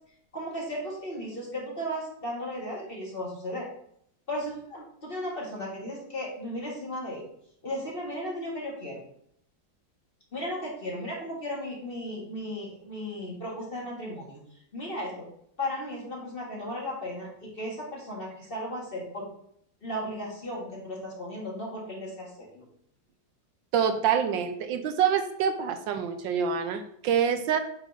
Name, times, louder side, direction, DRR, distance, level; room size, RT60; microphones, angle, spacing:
voice 1, 0.3-3.7 4.3-7.2 7.6-9.0 10.3-14.4 14.7-15.3 15.6-19.3 19.8-22.7, equal, 30° left, -4 dB, 1.7 m, -35 dB
voice 2, 23.7-27.6, right 7 dB, 85° right, 8 dB, 1.4 m, -26 dB
8.2 x 3.0 x 4.0 m, 0.69 s
omnidirectional pair, 2.0 m